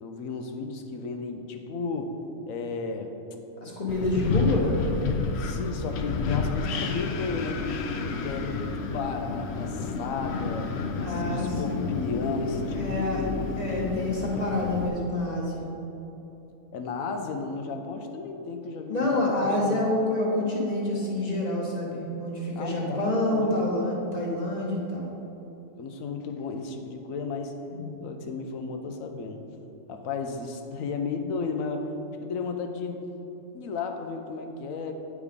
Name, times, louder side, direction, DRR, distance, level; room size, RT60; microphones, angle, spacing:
voice 1, 0.0-2.2 2.5-3.1 4.0-4.1 5.4-7.8 8.2-13.4 16.7-19.8 22.6-23.5 25.8-27.5 28.0-29.4 29.9-31.9 32.2-33.0 33.5-34.9, left 4 dB, 85° left, 5 dB, 1.1 m, -34 dB
voice 2, 3.6-4.7 11.0-11.9 12.7-13.2 13.6-15.7 18.9-25.1 27.7-27.9, left 1 dB, 30° left, -3 dB, 1.2 m, -27 dB
Wind, 3.9-14.9, left 4 dB, 65° left, 0.7 m, -30 dB
9.7 x 4.8 x 3.6 m, 3.0 s
omnidirectional pair, 1.4 m